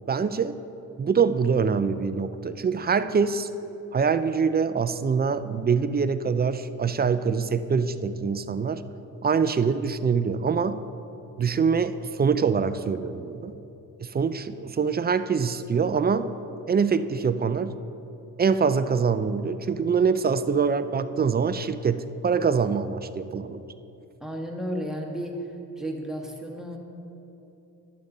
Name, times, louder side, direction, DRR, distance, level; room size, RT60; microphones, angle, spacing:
voice 1, 0.1-0.6 1.0-3.5 3.9-8.8 9.2-10.8 11.4-13.5 14.0-16.3 16.7-17.8 18.4-23.6, right 5 dB, 25° right, 12 dB, 0.4 m, -24 dB
voice 2, 24.2-25.3 25.8-26.8, equal, ahead, 0 dB, 1.3 m, -33 dB
11.0 x 7.0 x 3.9 m, 3.0 s
supercardioid pair, 60°, 38 cm